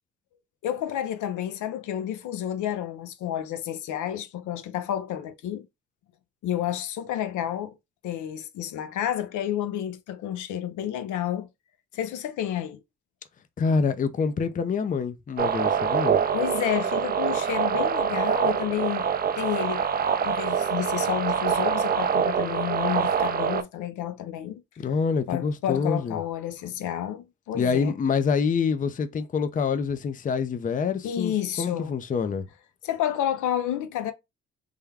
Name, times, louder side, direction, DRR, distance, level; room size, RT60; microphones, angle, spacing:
voice 1, 0.6-5.7 6.4-7.8 8.0-11.5 11.9-12.8 16.3-19.1 19.4-19.8 20.2-24.6 25.3-27.9 31.0-31.9 32.8-34.1, left 11 dB, 80° left, 0.6 m, -30 dB
voice 2, 13.6-16.2 24.8-26.2 27.5-32.5, left 5 dB, 25° left, 0.5 m, -26 dB
sound 1, 15.4-23.6, right 7 dB, 30° right, 0.5 m, -25 dB
3.5 x 2.2 x 3.3 m
cardioid pair, 90°, 30 cm